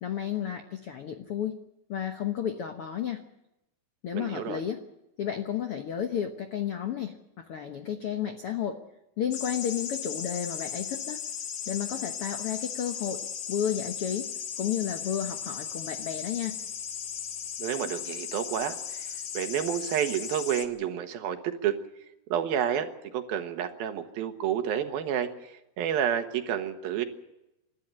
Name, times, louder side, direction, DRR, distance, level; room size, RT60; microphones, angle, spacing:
voice 1, 0.0-1.5 1.9-3.2 4.0-4.8 5.2-8.8 9.2-11.2 11.7-13.2 13.5-14.3 14.6-16.6, left 9 dB, 75° left, 6 dB, 1.3 m, -32 dB
voice 2, 4.1-4.6 17.6-21.8 22.3-22.9 23.1-27.0, right 9 dB, 75° right, 7 dB, 3.2 m, -30 dB
sound 1, 9.3-20.6, left 8 dB, 60° left, 2.3 m, -36 dB
29.0 x 12.5 x 8.8 m, 0.91 s
omnidirectional pair, 4.4 m